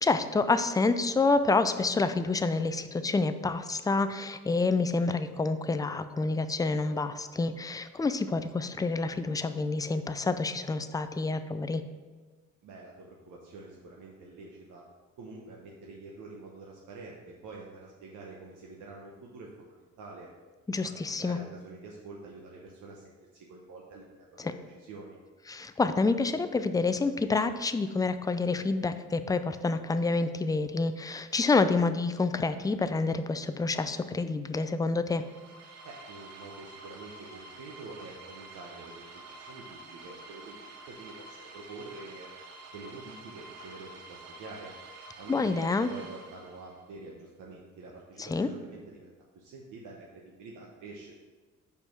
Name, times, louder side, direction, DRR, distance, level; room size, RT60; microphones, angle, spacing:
voice 1, 0.0-11.8 20.7-21.4 25.5-35.2 45.3-45.9 48.2-48.5, left 3 dB, 10° left, 10 dB, 0.4 m, -28 dB
voice 2, 12.6-14.8 15.2-20.3 20.8-24.1 24.3-25.2 35.8-39.0 39.4-42.3 42.7-44.7 45.2-51.1, right 3 dB, 80° right, -2 dB, 1.0 m, -47 dB
sound 1, 35.0-46.9, right 3 dB, 60° right, 1.1 m, -49 dB
5.4 x 4.6 x 5.9 m, 1.3 s
cardioid pair, 90°, 30 cm